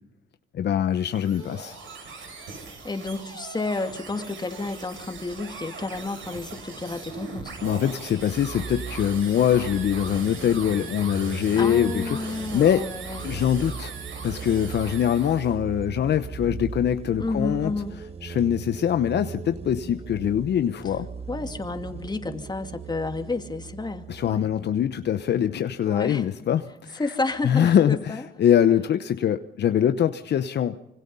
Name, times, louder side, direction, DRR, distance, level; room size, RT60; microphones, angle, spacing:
voice 1, 0.5-1.8 7.6-12.9 13.2-13.9 14.2-17.7 18.2-21.1 24.1-27.1 27.4-30.8, left 9 dB, 60° left, 10 dB, 0.9 m, -23 dB
sound 1, 0.9-15.5, right 4 dB, 75° right, 6.9 m, -39 dB
voice 2, 2.8-7.5 11.6-13.3 17.2-17.9 21.3-24.5 25.9-26.2 26.9-28.2, left 3 dB, 20° left, 7 dB, 2.5 m, -31 dB
sound 2, 8.2-25.6, right 6 dB, 30° right, 1.2 m, -39 dB
26.0 x 25.0 x 5.5 m, 0.90 s
cardioid pair, 90°, 20 cm